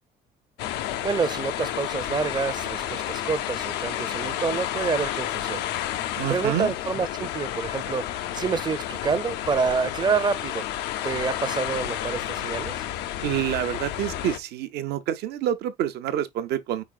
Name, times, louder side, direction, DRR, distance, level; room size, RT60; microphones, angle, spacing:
sound 1, 0.6-14.4, left 12 dB, 85° left, 0.5 m, -31 dB
voice 1, 1.0-5.6 6.3-10.7 11.0-12.8, right 5 dB, 25° right, 0.5 m, -27 dB
voice 2, 6.2-6.7 13.2-16.8, right 11 dB, 75° right, 0.7 m, -27 dB
4.9 x 4.1 x 2.3 m
cardioid pair, 110°, 17 cm